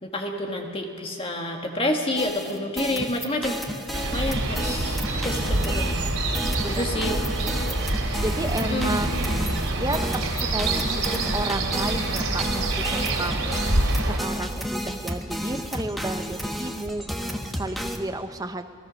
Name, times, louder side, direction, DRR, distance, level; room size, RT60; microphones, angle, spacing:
voice 1, 0.0-3.6 4.1-6.1 6.7-7.2 8.6-9.1, left 1 dB, 25° left, 2 dB, 1.9 m, -29 dB
sound 1, 2.2-18.0, equal, ahead, 1.3 m, -32 dB
sound 2, 3.9-14.2, right 2 dB, 85° right, 3.3 m, -26 dB
voice 2, 6.4-7.5 8.2-9.1 9.8-10.0 10.4-13.6 14.0-18.7, right 1 dB, 15° right, 7 dB, 0.9 m, -32 dB
28.0 x 17.5 x 6.5 m, 2.4 s
head